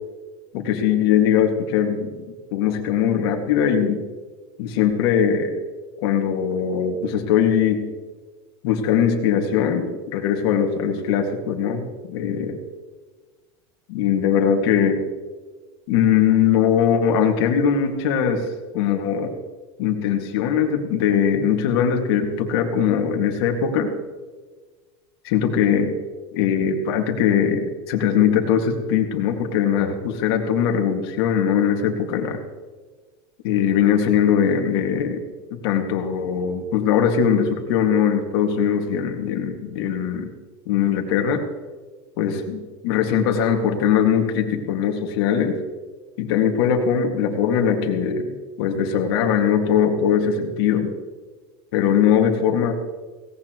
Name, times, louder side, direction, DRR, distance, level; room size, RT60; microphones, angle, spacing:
voice 1, 0.5-4.0 4.6-5.6 6.0-7.9 8.6-12.6 13.9-15.0 15.9-18.5 18.7-19.3 19.8-23.9 25.2-26.0 26.3-32.4 33.4-35.2 35.6-40.3 40.7-41.4 42.2-45.6 46.2-50.9 51.7-52.7, left 8 dB, 65° left, 3 dB, 2.2 m, -21 dB
17.5 x 17.0 x 3.1 m, 1.4 s
supercardioid pair, 160°, 14 cm